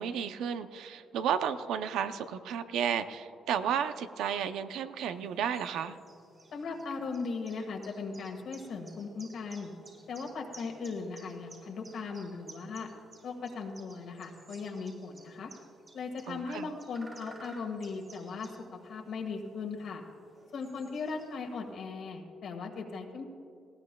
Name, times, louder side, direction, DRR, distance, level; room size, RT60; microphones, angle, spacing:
voice 1, 0.0-6.0 16.3-16.7, right 8 dB, 85° right, 10 dB, 0.6 m, -32 dB
sound 1, 5.1-21.7, right 2 dB, 35° right, 3.3 m, -56 dB
voice 2, 6.5-9.7 10.1-12.9 13.2-15.5 15.9-20.0 20.5-23.3, left 4 dB, 65° left, 2 dB, 1.7 m, -38 dB
19.0 x 16.0 x 2.3 m, 2.6 s
cardioid pair, 90°, 0 cm